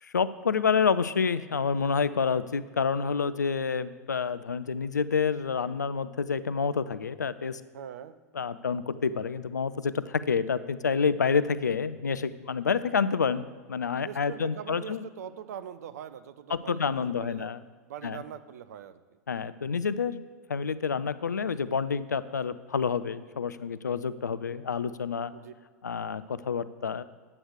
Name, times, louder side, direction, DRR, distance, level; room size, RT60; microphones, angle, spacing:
voice 1, 0.0-7.6 8.3-15.0 16.5-17.6 18.0-18.2 19.3-20.2 20.5-25.3 25.8-27.0, left 5 dB, 80° left, 15 dB, 0.4 m, -28 dB
voice 2, 7.7-8.1 14.0-17.5 17.9-19.0 25.3-25.5, right 9 dB, 65° right, 12 dB, 0.6 m, -42 dB
9.8 x 7.9 x 4.9 m, 1.5 s
figure-of-eight pair, 90°, 9 cm